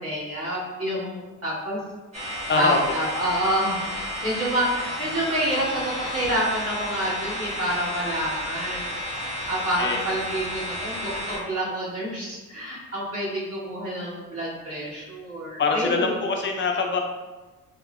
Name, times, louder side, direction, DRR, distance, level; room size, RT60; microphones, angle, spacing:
voice 1, 0.0-1.8 2.5-3.8 4.2-8.8 9.5-16.1, right 1 dB, 50° right, -7 dB, 1.5 m, -28 dB
sound 1, 2.1-11.4, equal, 20° right, 1.3 m, -32 dB
voice 2, 15.6-17.0, left 4 dB, 40° left, 2 dB, 0.5 m, -23 dB
3.1 x 2.9 x 2.4 m, 1.2 s
cardioid pair, 90°, 30 cm